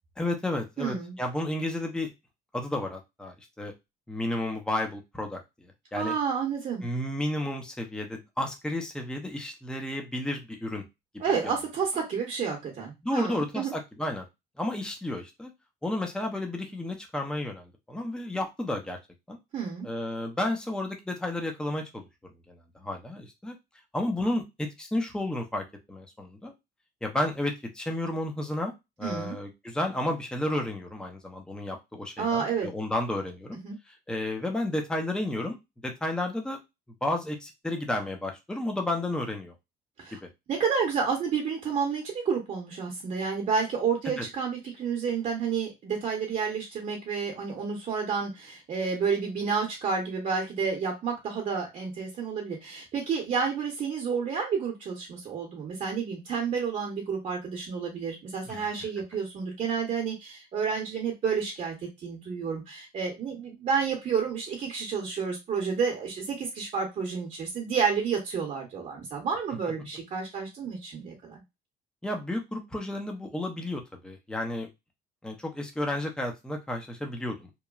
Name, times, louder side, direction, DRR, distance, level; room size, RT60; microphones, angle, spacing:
voice 1, 0.2-2.1 2.5-3.7 4.1-6.1 6.8-10.8 11.4-11.5 13.0-14.3 14.6-15.5 15.8-19.0 19.3-19.4 19.8-22.1 22.5-23.6 23.9-26.5 27.0-28.7 29.0-33.6 34.1-36.6 37.0-39.5 44.2-44.3 58.5-58.7 72.0-74.7 75.2-77.6, left 1 dB, 5° left, 3 dB, 0.6 m, -32 dB
voice 2, 0.8-1.1 6.0-6.8 11.2-13.7 19.5-19.9 29.0-29.4 32.2-32.7 33.6-33.8 40.0-40.2 40.5-71.4, right 6 dB, 45° right, 1 dB, 0.9 m, -30 dB
3.0 x 2.2 x 2.3 m, 0.22 s
cardioid pair, 110°, 17 cm